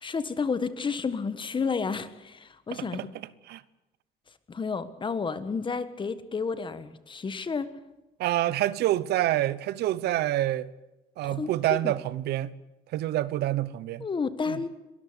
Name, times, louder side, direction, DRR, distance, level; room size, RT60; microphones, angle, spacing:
voice 1, 0.0-3.0 4.5-7.7 11.2-11.8 14.0-14.7, left 5 dB, 30° left, 1.5 m, -31 dB
voice 2, 2.7-3.1 3.4-3.6 8.2-10.7 11.2-12.5 12.9-14.1 14.5-14.6, right 14 dB, 75° right, 0.9 m, -27 dB
22.5 x 13.5 x 9.8 m
cardioid pair, 110°, 17 cm